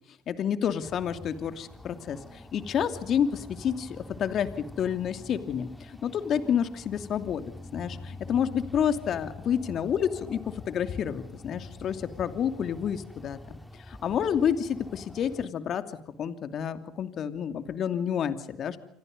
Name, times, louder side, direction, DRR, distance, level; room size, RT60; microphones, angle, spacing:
voice 1, 0.3-13.4 13.9-15.8 16.2-18.8, left 8 dB, 50° left, 9 dB, 2.8 m, -29 dB
sound 1, 0.8-15.5, left 2 dB, 5° left, 2.1 m, -45 dB
28.5 x 25.5 x 5.4 m, 0.66 s
supercardioid pair, 85°, 0 cm